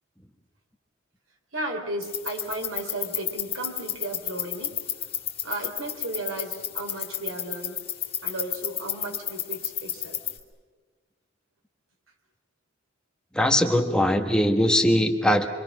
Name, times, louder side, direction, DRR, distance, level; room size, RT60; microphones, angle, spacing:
voice 1, 1.5-4.8 5.4-7.8 8.2-10.2, right 2 dB, 80° right, 3 dB, 3.8 m, -34 dB
sound 1, 2.0-10.4, left 10 dB, 30° left, 2.5 m, -33 dB
voice 2, 13.3-15.5, equal, 5° left, 4 dB, 1.3 m, -21 dB
26.5 x 25.5 x 6.2 m, 1.4 s
head